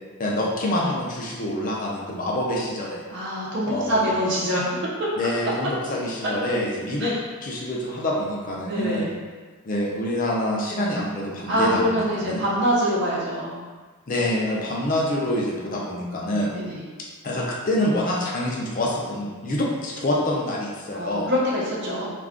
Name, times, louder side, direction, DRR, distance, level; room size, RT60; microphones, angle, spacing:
voice 1, 0.2-3.0 3.6-4.3 5.2-7.1 7.4-9.1 9.6-11.9 12.2-12.4 14.1-16.5 17.2-21.3, left 1 dB, 40° left, -3 dB, 0.5 m, -26 dB
voice 2, 3.1-4.7 7.0-7.2 8.7-9.1 11.5-13.6 16.6-16.8 20.9-22.1, equal, 55° right, -6 dB, 0.7 m, -24 dB
2.4 x 2.3 x 3.5 m, 1.4 s
head